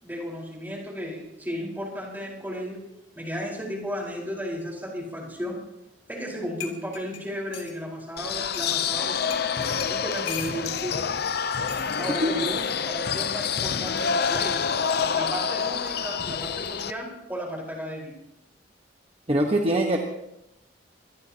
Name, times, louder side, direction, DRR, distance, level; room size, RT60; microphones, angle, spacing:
voice 1, 0.0-2.8 3.1-5.6 6.1-9.4 9.9-11.0 12.0-14.6 15.1-18.1, equal, 10° right, -3 dB, 4.7 m, -34 dB
sound 1, 6.6-7.8 8.5-8.6 9.3-9.5 9.8-10.9 11.7-11.9 13.0-13.3, left 9 dB, 75° left, 3.0 m, -38 dB
sound 2, 8.2-16.9, left 6 dB, 55° left, 0.7 m, -27 dB
voice 2, 19.3-20.0, right 1 dB, 30° right, 2 dB, 1.3 m, -23 dB
25.0 x 19.5 x 3.0 m, 0.86 s
head